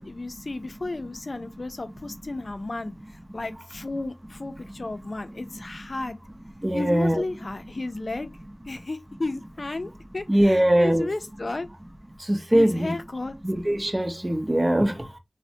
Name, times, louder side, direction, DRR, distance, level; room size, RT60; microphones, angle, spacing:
voice 1, 0.0-6.2 6.7-8.3 8.7-11.7 12.5-13.3, left 2 dB, 75° left, 0.4 m, -33 dB
voice 2, 6.6-7.2 10.3-11.1 12.3-12.9 13.4-14.9, right 1 dB, 25° right, 0.6 m, -21 dB
3.2 x 2.1 x 2.6 m
wide cardioid pair, 55°, 0 cm